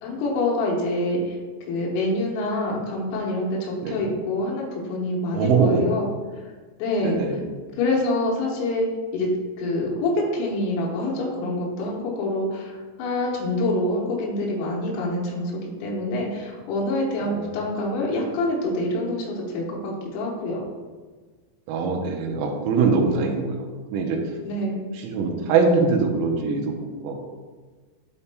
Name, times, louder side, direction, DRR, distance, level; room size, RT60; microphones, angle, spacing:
voice 1, 0.0-1.4 1.7-6.1 6.8-7.2 7.8-8.9 9.1-9.3 9.6-20.6 24.4-24.9, left 1 dB, 90° left, -3 dB, 4.0 m, -26 dB
voice 2, 3.8-4.1 5.3-5.8 7.0-7.5 17.2-17.4 21.7-24.2 25.0-26.7 27.0-27.2, right 4 dB, 90° right, 1 dB, 3.5 m, -23 dB
11.5 x 4.2 x 2.2 m, 1.4 s
omnidirectional pair, 6.0 m